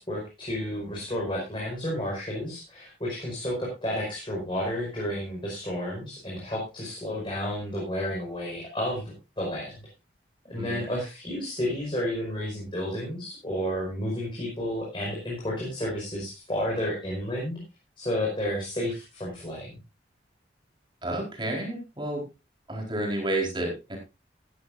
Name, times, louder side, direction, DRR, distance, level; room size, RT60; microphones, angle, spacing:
voice 1, 0.0-9.7 10.4-17.6 18.0-19.7, left 1 dB, 25° left, -4 dB, 5.2 m, -31 dB
voice 2, 21.0-22.2 22.7-24.0, right 1 dB, 25° right, 1 dB, 4.3 m, -30 dB
14.0 x 14.0 x 2.6 m, 0.26 s
head